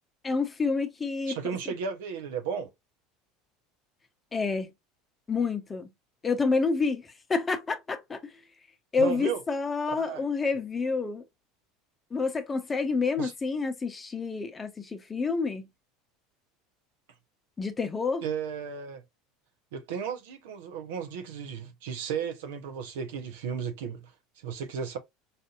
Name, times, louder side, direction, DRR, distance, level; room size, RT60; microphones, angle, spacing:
voice 1, 0.2-1.4 1.7-1.8 4.3-4.7 5.3-5.9 6.2-8.4 8.9-11.2 12.1-15.7 17.6-18.2, left 4 dB, 25° left, 0.7 m, -28 dB
voice 2, 1.3-2.7 9.0-9.4 10.0-10.2 13.2-13.3 18.2-19.0 19.7-24.1 24.4-25.0, right 7 dB, 75° right, 0.8 m, -34 dB
4.2 x 2.7 x 2.4 m
hypercardioid pair, 80°, 0 cm